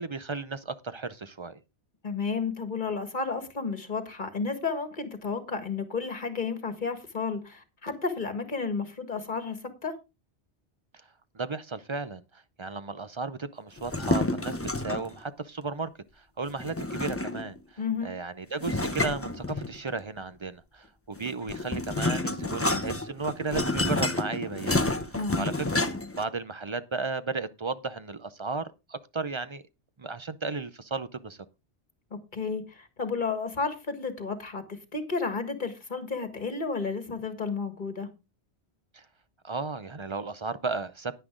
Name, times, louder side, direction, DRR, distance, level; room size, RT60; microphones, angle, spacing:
voice 1, 0.0-1.6 11.3-12.2 12.6-15.9 16.4-17.5 18.0-24.9 25.4-25.9 26.2-29.6 30.0-31.4 38.9-39.0 39.4-41.2, right 4 dB, 35° right, 0.5 m, -34 dB
voice 2, 2.0-10.0 17.8-18.2 25.1-25.5 32.1-38.1, left 4 dB, 45° left, 1.9 m, -32 dB
sound 1, 13.8-15.2 16.6-17.6 18.6-20.0 21.2-26.2, left 2 dB, 15° left, 0.8 m, -29 dB
10.5 x 10.0 x 3.7 m
omnidirectional pair, 1.1 m